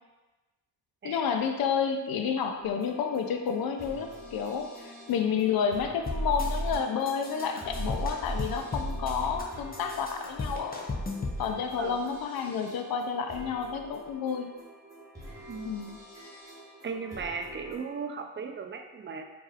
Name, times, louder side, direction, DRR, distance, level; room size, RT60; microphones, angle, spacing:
voice 1, 1.0-11.1 11.4-14.5 15.6-16.0, left 6 dB, 80° left, 5 dB, 0.5 m, -30 dB
sound 1, 2.6-17.8, left 1 dB, 10° right, 1.2 m, -47 dB
sound 2, 6.1-6.8 7.1-9.4 9.7-11.4, left 1 dB, 25° left, 0.7 m, -33 dB
voice 2, 16.8-19.2, right 5 dB, 35° right, 4 dB, 0.5 m, -36 dB
4.6 x 3.0 x 2.4 m, 1.2 s
cardioid pair, 60°, 35 cm